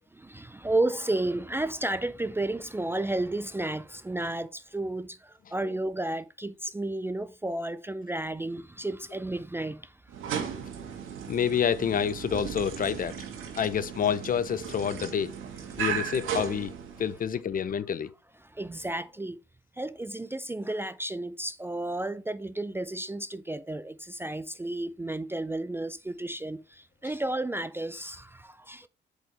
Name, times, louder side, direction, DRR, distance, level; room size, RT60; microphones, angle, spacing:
voice 1, 0.1-10.0 15.7-15.8 18.4-19.4 19.8-28.9, right 2 dB, 10° right, 0.4 m, -32 dB
sound 1, 10.1-17.3, right 8 dB, 90° right, 1.6 m, -36 dB
voice 2, 11.3-13.2 13.6-15.3 15.8-16.7 17.0-18.1, left 8 dB, 45° left, 0.6 m, -28 dB
7.4 x 5.1 x 3.3 m
cardioid pair, 90°, 20 cm